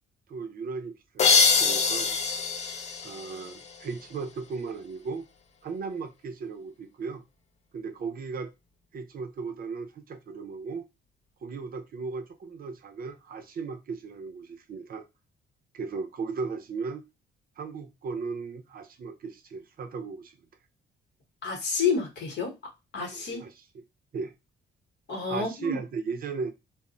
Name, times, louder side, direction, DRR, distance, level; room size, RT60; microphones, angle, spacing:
voice 1, 0.3-2.2 3.0-5.3 5.6-7.2 7.7-8.5 8.9-10.9 11.4-15.0 15.7-17.1 17.6-20.4 23.1-23.7 24.1-24.3 25.3-26.5, right 4 dB, 50° right, 0.5 m, -36 dB
sound 1, 1.2-3.9, left 5 dB, 35° left, 0.4 m, -24 dB
voice 2, 21.4-22.5 22.9-23.4 25.1-25.8, left 5 dB, 60° left, 1.0 m, -29 dB
2.0 x 2.0 x 3.7 m
cardioid pair, 90°, 20 cm